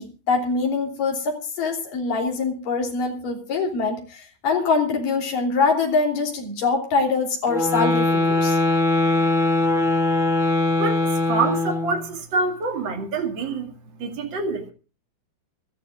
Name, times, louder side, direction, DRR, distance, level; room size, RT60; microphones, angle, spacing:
voice 1, 0.0-8.6, left 4 dB, 65° left, 4.8 m, -24 dB
sound 1, 7.5-12.0, left 2 dB, ahead, 1.4 m, -21 dB
voice 2, 10.8-13.7 14.0-14.7, right 4 dB, 35° right, 2.7 m, -26 dB
25.0 x 13.5 x 2.5 m
omnidirectional pair, 4.2 m